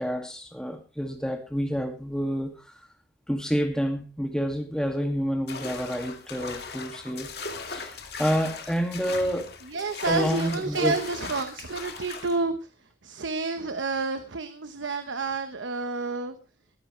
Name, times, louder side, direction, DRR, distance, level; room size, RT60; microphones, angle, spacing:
voice 1, 0.0-2.6 3.3-7.3 7.7-9.5 10.1-11.0, equal, 5° left, 3 dB, 2.2 m, -28 dB
sound 1, 5.5-12.4, left 4 dB, 55° left, 2.1 m, -38 dB
voice 2, 9.6-12.7 13.0-16.4, right 3 dB, 85° right, 9 dB, 1.1 m, -29 dB
21.5 x 10.5 x 3.3 m, 0.33 s
head